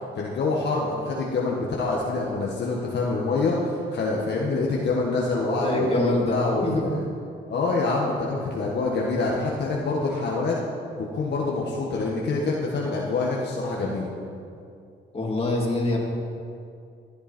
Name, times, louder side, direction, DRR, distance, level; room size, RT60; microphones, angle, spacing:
voice 1, 0.1-7.0 7.5-10.6 11.0-14.1, left 3 dB, 60° left, -3 dB, 1.7 m, -26 dB
voice 2, 5.6-6.9 15.1-16.0, left 1 dB, 30° left, -2 dB, 3.2 m, -24 dB
16.0 x 11.0 x 4.5 m, 2.5 s
cardioid pair, 90°, 20 cm